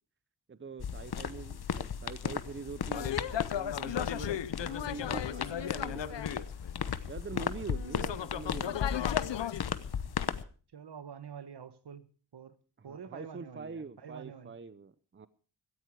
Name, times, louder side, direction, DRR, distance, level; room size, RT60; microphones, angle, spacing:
voice 1, 0.5-6.5 7.1-8.9 12.8-15.3, right 5 dB, 30° right, 0.8 m, -44 dB
sound 1, 0.8-10.4, left 7 dB, 60° left, 1.0 m, -36 dB
sound 2, 2.9-6.9 7.3-9.6, left 10 dB, 85° left, 0.8 m, -36 dB
voice 2, 10.7-12.6 12.8-14.5, right 7 dB, 70° right, 1.4 m, -47 dB
17.0 x 14.0 x 4.8 m
wide cardioid pair, 100°, 42 cm